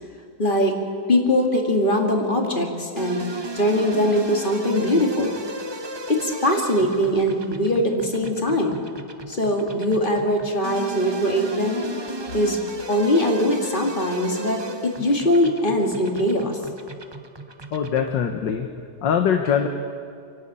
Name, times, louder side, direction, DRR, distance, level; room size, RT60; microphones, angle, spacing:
voice 1, 0.4-0.7 1.1-3.2 3.6-5.4 6.1-8.8 9.3-11.8 12.3-12.6 12.9-16.6, left 1 dB, 30° left, 2 dB, 2.4 m, -21 dB
sound 1, 3.0-18.3, right 1 dB, 25° right, 0.6 m, -36 dB
voice 2, 17.7-18.7 19.0-19.7, left 8 dB, 85° left, 5 dB, 1.8 m, -22 dB
27.5 x 12.0 x 8.8 m, 2.3 s
omnidirectional pair, 1.9 m